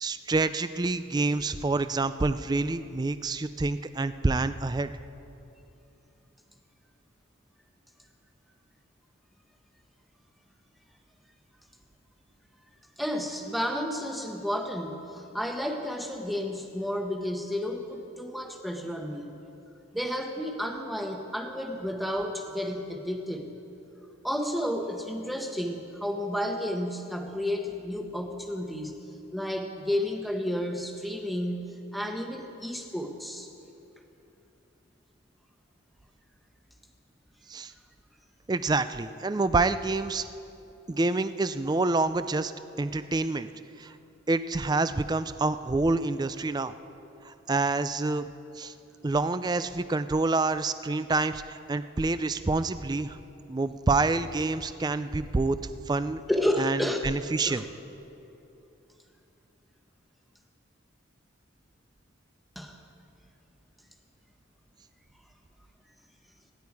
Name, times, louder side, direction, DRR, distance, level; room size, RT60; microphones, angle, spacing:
voice 1, 0.0-4.9 37.5-37.7 38.5-40.2 40.9-42.5 42.8-43.5 43.8-43.9 44.3-46.7 47.2-48.2 48.6-48.7 49.0-53.2 53.5-55.6 55.9-56.2 56.6-57.7, right 3 dB, 20° right, 12 dB, 0.4 m, -27 dB
voice 2, 13.0-19.3 19.9-23.5 24.2-29.0 29.3-33.5 56.3-57.0 57.5-57.6 62.6-62.8, left 1 dB, ahead, 3 dB, 1.1 m, -31 dB
25.5 x 10.5 x 4.7 m, 2.8 s
head